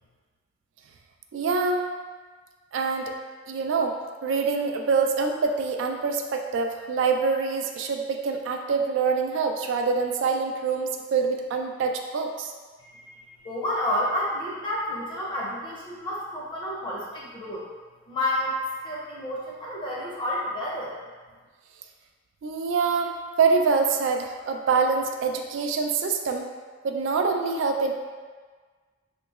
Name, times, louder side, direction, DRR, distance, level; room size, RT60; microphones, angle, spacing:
voice 1, 1.3-1.8 2.7-3.1 3.5-4.0 4.2-12.5 22.4-26.5 26.8-27.9, right 4 dB, 65° right, 3 dB, 0.3 m, -25 dB
voice 2, 12.9-17.6 18.1-20.9, left 1 dB, 25° left, -5 dB, 0.7 m, -30 dB
3.7 x 2.9 x 2.3 m, 1.5 s
head